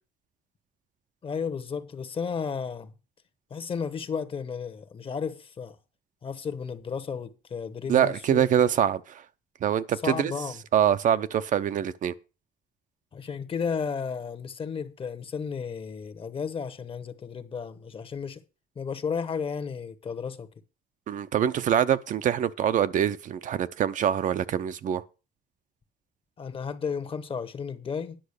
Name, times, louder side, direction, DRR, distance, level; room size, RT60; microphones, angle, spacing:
voice 1, 1.2-2.9 3.5-5.8 6.2-8.4 10.0-10.6 13.1-18.4 18.8-20.5 26.4-28.2, left 6 dB, 35° left, 1.1 m, -33 dB
voice 2, 7.9-9.2 9.6-10.3 10.7-12.1 21.1-25.0, right 9 dB, 55° right, 0.7 m, -24 dB
10.5 x 6.3 x 6.5 m
cardioid pair, 125°, 16 cm